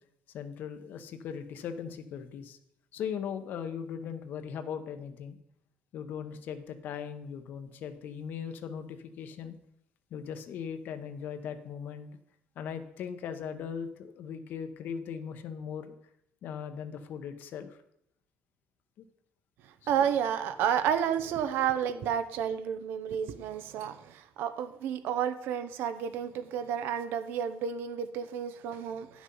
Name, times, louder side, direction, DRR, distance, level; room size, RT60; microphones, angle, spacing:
voice 1, 0.3-2.6 2.9-5.4 5.9-9.6 10.1-12.1 12.6-15.9 16.4-17.8 19.0-19.1, left 7 dB, 60° left, 9 dB, 0.9 m, -39 dB
voice 2, 19.9-29.2, right 8 dB, 75° right, 11 dB, 0.8 m, -31 dB
9.9 x 6.2 x 5.4 m, 0.74 s
cardioid pair, 160°, 4 cm